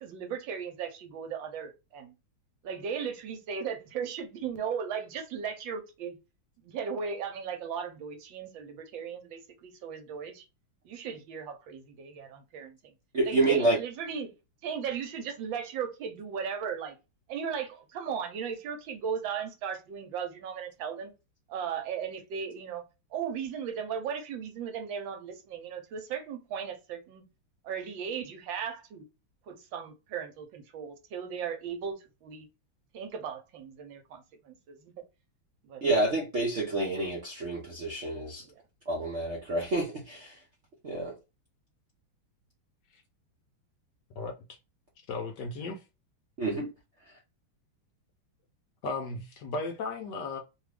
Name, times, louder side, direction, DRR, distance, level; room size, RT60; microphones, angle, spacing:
voice 1, 0.0-2.1 2.6-6.2 6.6-10.4 10.8-12.8 13.3-14.3 14.6-17.0 17.3-21.1 21.5-22.8 23.1-27.2 27.6-29.1 29.5-32.5 32.9-34.9 35.6-35.8 38.4-38.5, right 7 dB, 75° right, 1.4 m, -36 dB
voice 2, 13.1-13.8 35.8-38.4 38.9-40.4 40.8-41.1 46.4-46.7, right 2 dB, 60° right, 0.7 m, -28 dB
voice 3, 44.2-44.6 45.1-45.8 48.8-50.4, left 3 dB, 70° left, 1.1 m, -35 dB
3.3 x 2.3 x 3.3 m
omnidirectional pair, 2.2 m